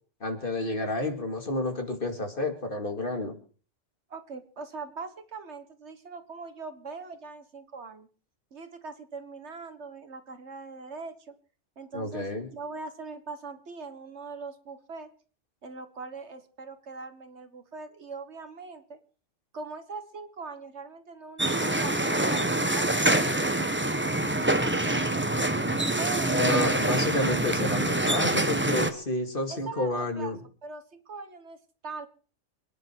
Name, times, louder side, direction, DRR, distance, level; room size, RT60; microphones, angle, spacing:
voice 1, 0.2-3.4 11.9-12.5 26.4-30.4, left 1 dB, 45° left, 5 dB, 2.7 m, -30 dB
voice 2, 4.1-8.1 8.5-11.4 11.8-15.1 15.6-19.0 19.5-25.2 26.0-26.4 29.5-30.3 30.6-32.1, right 4 dB, 65° right, 10 dB, 1.8 m, -41 dB
sound 1, 21.4-28.9, right 1 dB, 10° right, 1.1 m, -25 dB
28.0 x 10.0 x 4.7 m, 0.41 s
omnidirectional pair, 1.3 m